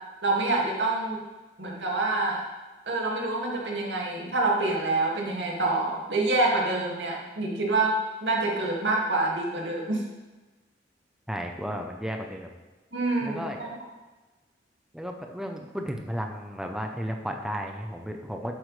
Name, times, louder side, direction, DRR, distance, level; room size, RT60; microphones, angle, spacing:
voice 1, 0.2-1.2 1.6-2.4 2.9-10.0 12.9-13.8, right 2 dB, 90° right, -2 dB, 2.1 m, -26 dB
voice 2, 11.3-12.5 13.2-13.6 14.9-18.6, equal, 5° right, 3 dB, 0.7 m, -34 dB
11.5 x 7.8 x 3.3 m, 1.2 s
head